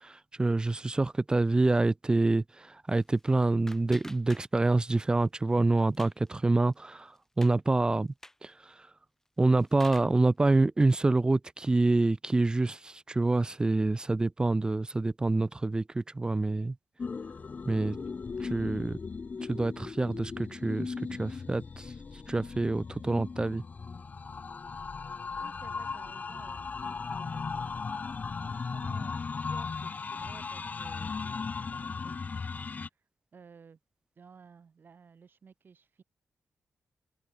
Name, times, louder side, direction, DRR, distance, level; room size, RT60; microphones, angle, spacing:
voice 1, 0.0-8.1 8.4-8.9 9.4-16.8 17.7-18.0 18.4-19.0 19.5-21.9 22.3-23.6, right 2 dB, 20° right, 0.5 m, -27 dB
sound 1, 2.9-4.9 5.2-6.3 6.7-6.8 7.1-7.6 8.1-8.5 9.2-10.2, left 1 dB, 10° left, 1.6 m, -50 dB
sound 2, 17.0-32.9, left 5 dB, 35° left, 1.0 m, -37 dB
voice 2, 25.4-26.7 27.2-27.5 28.4-33.0 33.3-33.8 34.2-36.0, right 6 dB, 45° right, 6.7 m, -55 dB
wide cardioid pair, 130°, 5 cm